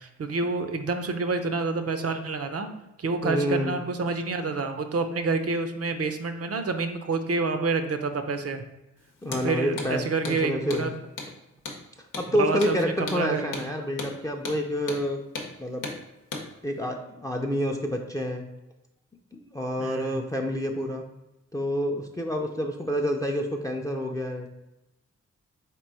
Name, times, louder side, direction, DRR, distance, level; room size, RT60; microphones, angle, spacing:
voice 1, 0.0-2.7 3.0-8.6 9.4-11.0 12.3-13.6 19.8-20.2, right 4 dB, 50° right, 7 dB, 0.6 m, -28 dB
voice 2, 3.2-3.8 9.2-10.9 12.2-15.2 15.6-15.8 16.6-18.5 19.3-21.0 21.5-24.5, equal, 10° left, 3 dB, 0.5 m, -28 dB
Hammer, 9.2-9.5 9.8-9.9 10.2-10.4 10.7-10.9 11.2-11.3 11.7-11.8 12.1-12.3 12.6-12.8 13.1-13.2 13.5-13.7 14.0-14.1 14.5-14.6 14.9-15.0 15.4-15.5 15.8-16.0 16.3-16.5, left 3 dB, 90° left, 0.8 m, -35 dB
3.7 x 3.0 x 4.7 m, 0.95 s
cardioid pair, 55°, 31 cm